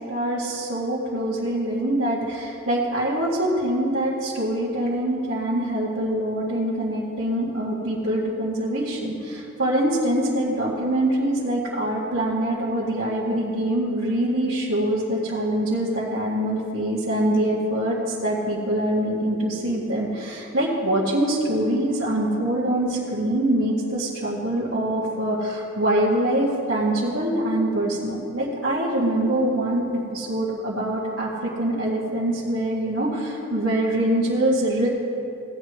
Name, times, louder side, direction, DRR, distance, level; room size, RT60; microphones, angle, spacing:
voice 1, 0.0-29.8 30.1-34.9, right 1 dB, 70° right, -10 dB, 1.9 m, -24 dB
18.0 x 9.8 x 3.1 m, 2.7 s
head